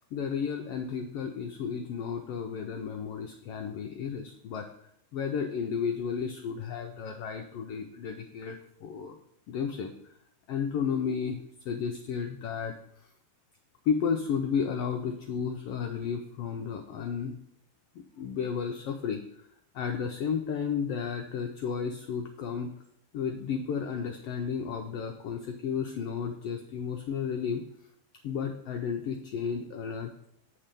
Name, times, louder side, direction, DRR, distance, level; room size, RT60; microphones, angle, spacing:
voice 1, 0.1-4.7 5.1-9.2 9.5-9.9 10.5-11.4 11.6-12.7 13.8-17.4 18.2-19.5 19.7-22.7 23.1-27.6 28.2-30.1, left 6 dB, 90° left, 4 dB, 1.3 m, -32 dB
8.0 x 4.4 x 5.1 m, 0.71 s
omnidirectional pair, 3.4 m